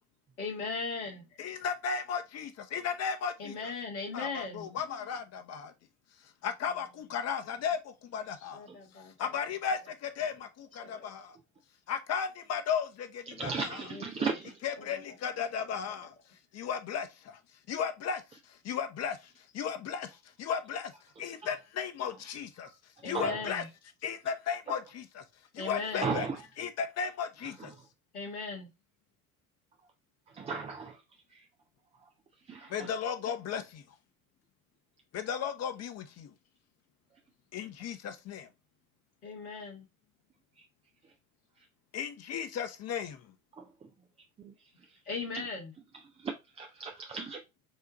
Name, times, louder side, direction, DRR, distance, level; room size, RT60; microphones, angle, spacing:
voice 1, 0.4-1.2 3.4-4.7 6.7-6.8 7.5-7.6 8.3-9.6 10.8-11.1 13.8-14.4 14.8-16.0 23.0-23.7 25.6-26.1 28.1-28.7 39.2-39.9 44.7-45.7, left 4 dB, 80° left, 1.6 m, -39 dB
voice 2, 1.4-3.7 4.1-5.7 6.4-8.6 9.2-11.4 11.9-13.8 14.6-16.1 16.5-17.4 17.7-18.2 18.5-20.1 20.4-20.9 21.2-22.7 23.0-23.6 24.0-25.2 25.5-26.3 26.6-27.7 32.7-33.8 35.1-36.3 37.5-38.5 41.9-43.3, left 7 dB, 35° left, 0.8 m, -35 dB
voice 3, 13.3-14.5 23.1-23.4 26.0-26.4 30.3-31.0 31.3-31.4 32.5-32.9 43.6-43.7 44.4-44.5 46.2-47.4, right 5 dB, 15° right, 0.4 m, -35 dB
6.3 x 2.5 x 2.9 m
figure-of-eight pair, 70°, 44 cm